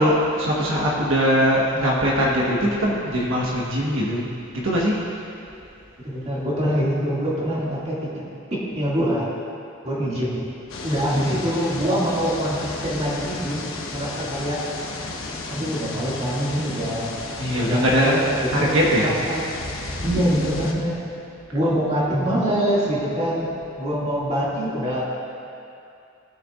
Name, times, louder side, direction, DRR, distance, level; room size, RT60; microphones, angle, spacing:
voice 1, 0.0-4.3 4.6-5.0 11.2-11.4 17.4-18.2 18.5-19.2 20.1-20.6, equal, 75° right, -4 dB, 1.4 m, -21 dB
voice 2, 6.0-8.2 8.5-9.3 9.8-10.4 10.8-14.6 15.5-17.1 17.6-19.6 20.0-21.0 21.5-23.5 23.8-25.0, equal, 35° right, -7 dB, 2.4 m, -24 dB
sound 1, 10.7-20.7, left 3 dB, 75° left, 1.1 m, -33 dB
19.5 x 6.8 x 2.5 m, 2.6 s
head